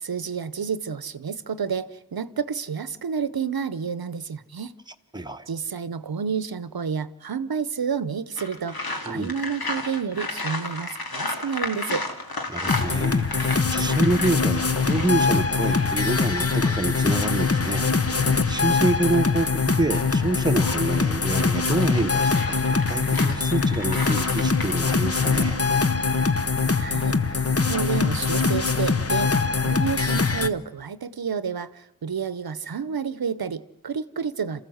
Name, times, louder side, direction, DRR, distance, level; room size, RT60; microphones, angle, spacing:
voice 1, 0.0-4.7 5.5-12.0 26.8-27.2 27.6-34.6, right 6 dB, 80° right, 0.8 m, -30 dB
voice 2, 5.1-5.5 9.1-9.3 12.5-25.6, right 2 dB, 10° right, 1.1 m, -27 dB
sound 1, 8.4-18.2 20.4-24.8, left 2 dB, 85° left, 2.2 m, -34 dB
sound 2, 12.7-30.5, left 4 dB, 40° left, 0.9 m, -23 dB
27.5 x 14.5 x 7.9 m
wide cardioid pair, 55°, 36 cm